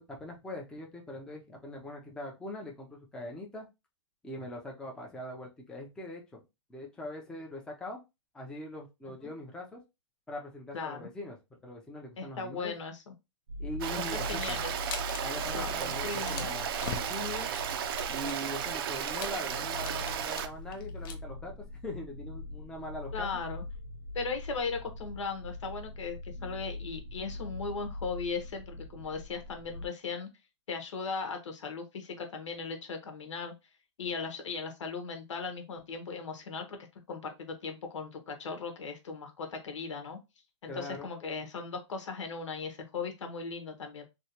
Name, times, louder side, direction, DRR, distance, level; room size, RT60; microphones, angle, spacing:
voice 1, 0.0-3.7 4.2-6.4 6.7-8.0 8.3-9.8 10.3-11.4 11.6-12.7 13.6-14.6 15.2-17.5 18.1-21.5 21.8-23.3 40.7-41.1, left 1 dB, 5° left, 0 dB, 0.6 m, -42 dB
voice 2, 10.7-11.1 12.2-13.1 13.9-14.7 15.5-16.5 23.1-23.6 24.1-30.3 30.7-33.5 34.0-36.8 37.1-40.2 40.6-44.0, left 4 dB, 85° left, 5 dB, 1.2 m, -38 dB
sound 1, 13.5-29.9, left 2 dB, 85° right, 0.8 m, -42 dB
Stream, 13.8-20.5, right 9 dB, 50° right, 0.5 m, -34 dB
sound 2, 14.2-15.2 15.5-15.7 16.0-21.1, left 7 dB, 45° left, 0.6 m, -43 dB
3.1 x 2.7 x 2.9 m, 0.24 s
hypercardioid pair, 150°, 15 cm